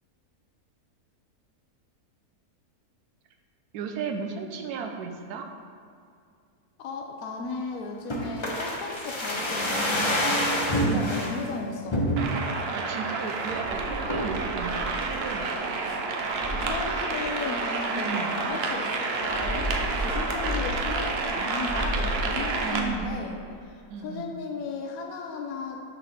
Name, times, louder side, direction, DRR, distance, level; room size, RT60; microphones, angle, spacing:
voice 1, 3.7-5.5 10.8-11.2 12.6-15.5 17.9-18.3 22.6-23.1 23.9-24.3, right 6 dB, 85° right, 4 dB, 1.2 m, -35 dB
voice 2, 6.8-12.1 15.9-16.0 16.6-23.4 23.6-25.8, left 4 dB, 70° left, 1 dB, 1.1 m, -35 dB
sound 1, 8.1-11.3 11.9-12.5 12.9-13.0 13.3-13.6 14.1-14.4 14.9-15.6 15.9-16.0, equal, 25° left, 0.7 m, -27 dB
sound 2, 12.2-22.8, right 3 dB, 55° right, 0.7 m, -30 dB
sound 3, 13.5-15.4 16.3-17.8 19.1-21.3 21.6-23.3, equal, 25° right, 1.9 m, -34 dB
6.4 x 4.0 x 6.1 m, 2.3 s
omnidirectional pair, 1.6 m